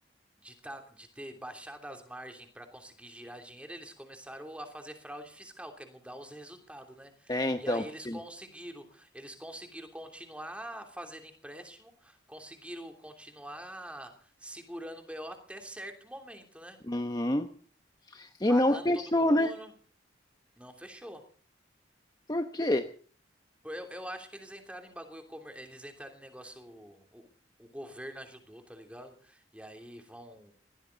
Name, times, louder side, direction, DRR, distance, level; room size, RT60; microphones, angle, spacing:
voice 1, 0.4-16.8 18.5-19.7 20.6-21.2 23.6-27.3 27.6-30.5, equal, 5° right, 5 dB, 3.0 m, -45 dB
voice 2, 7.3-8.2 16.9-17.5 18.1-19.5 22.3-22.9, left 1 dB, 20° left, 7 dB, 0.9 m, -27 dB
20.5 x 16.0 x 3.9 m, 0.43 s
head